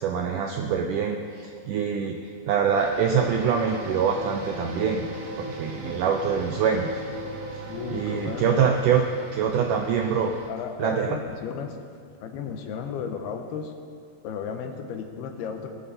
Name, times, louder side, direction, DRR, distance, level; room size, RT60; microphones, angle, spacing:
voice 1, 0.0-2.2 2.5-5.1 5.4-6.9 7.9-10.3 10.8-11.2, right 7 dB, 80° right, 3 dB, 1.9 m, -24 dB
sound 1, 2.7-10.5, right 4 dB, 60° right, 1.6 m, -42 dB
sound 2, 2.9-8.7, equal, 35° left, 2.7 m, -39 dB
voice 2, 7.7-8.7 10.5-11.8 12.2-13.7 14.2-15.7, left 6 dB, 80° left, 6 dB, 2.9 m, -34 dB
19.0 x 12.0 x 4.3 m, 2.1 s
omnidirectional pair, 4.6 m